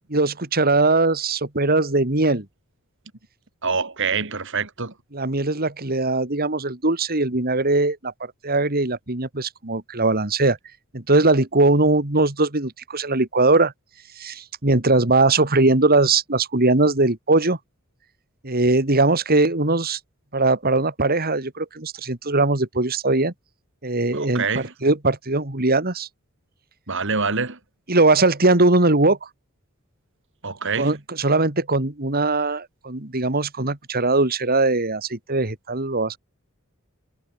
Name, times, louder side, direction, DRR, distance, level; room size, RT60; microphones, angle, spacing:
voice 1, 0.1-2.4 5.1-8.1 8.4-10.6 10.9-13.7 14.2-17.6 18.4-20.0 20.3-23.3 23.8-26.1 27.9-29.2 30.8-36.2, right 2 dB, 45° right, 2.7 m, -20 dB
voice 2, 3.6-4.9 24.1-24.7 26.9-27.6 30.4-31.0, right 5 dB, 60° right, 3.4 m, -25 dB
head